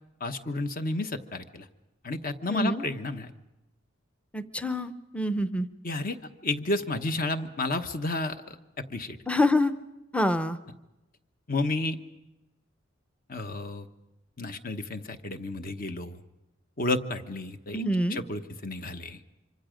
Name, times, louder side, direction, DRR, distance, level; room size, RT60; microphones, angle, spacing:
voice 1, 0.2-1.7 2.0-3.3 5.8-6.2 6.4-9.2 11.5-12.0 13.3-13.9 14.4-16.2 16.8-17.8 18.1-19.2, left 2 dB, 45° left, 8 dB, 1.1 m, -31 dB
voice 2, 2.5-2.8 4.3-5.7 9.3-9.7 10.1-10.6 17.7-18.2, left 1 dB, 5° left, 11 dB, 0.7 m, -26 dB
26.0 x 25.0 x 5.1 m, 0.98 s
head